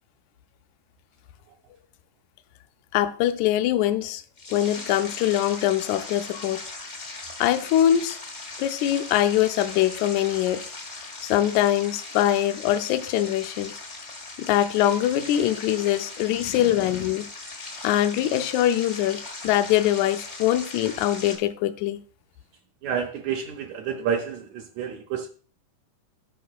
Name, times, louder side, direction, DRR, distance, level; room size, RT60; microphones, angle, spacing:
voice 1, 2.9-4.2 4.5-6.6 7.4-8.2 8.6-10.7 11.2-13.8 14.4-17.3 17.8-22.0, left 12 dB, 80° left, 1.8 m, -23 dB
sound 1, 4.4-21.4, left 3 dB, 40° left, 0.9 m, -39 dB
voice 2, 22.8-25.3, right 7 dB, 75° right, 1.9 m, -29 dB
12.5 x 5.5 x 2.3 m
omnidirectional pair, 3.6 m